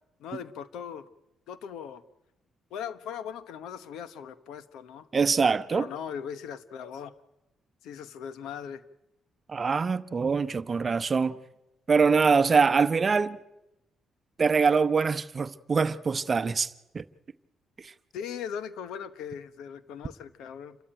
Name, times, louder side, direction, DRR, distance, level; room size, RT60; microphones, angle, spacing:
voice 1, 0.2-1.1 1.5-2.0 2.7-5.1 5.7-7.1 7.8-8.8 18.1-20.8, left 8 dB, 85° left, 1.1 m, -39 dB
voice 2, 5.1-5.9 9.5-11.4 11.9-13.4 14.4-17.0 17.8-17.9, right 5 dB, 35° right, 0.9 m, -24 dB
28.0 x 13.5 x 9.1 m
cardioid pair, 90°, 0 cm